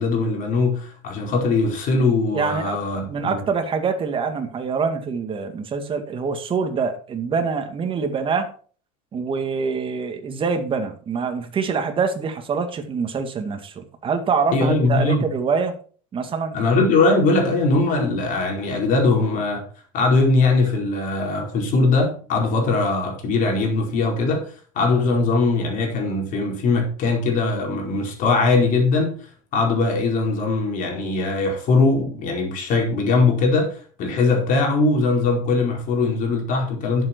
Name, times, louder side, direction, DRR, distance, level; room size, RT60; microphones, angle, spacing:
voice 1, 0.0-3.4 14.5-15.2 16.5-19.6 19.9-29.2 29.5-37.1, left 3 dB, 55° left, 4.7 m, -21 dB
voice 2, 2.3-2.8 3.1-8.5 9.1-15.8 16.1-16.6, right 5 dB, 30° right, 2.2 m, -25 dB
11.0 x 7.7 x 4.6 m
cardioid pair, 125°, 16 cm